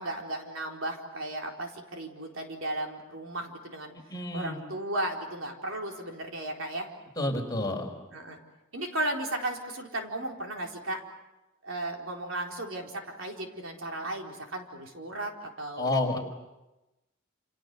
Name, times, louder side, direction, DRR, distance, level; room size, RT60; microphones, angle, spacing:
voice 1, 0.0-3.9 4.3-6.9 8.1-8.4 8.7-11.0 11.6-16.1, right 1 dB, 70° right, 2 dB, 4.2 m, -35 dB
voice 2, 4.1-4.6 7.2-7.9 15.8-16.2, left 2 dB, 20° left, 1 dB, 4.9 m, -29 dB
29.0 x 29.0 x 6.9 m, 0.98 s
head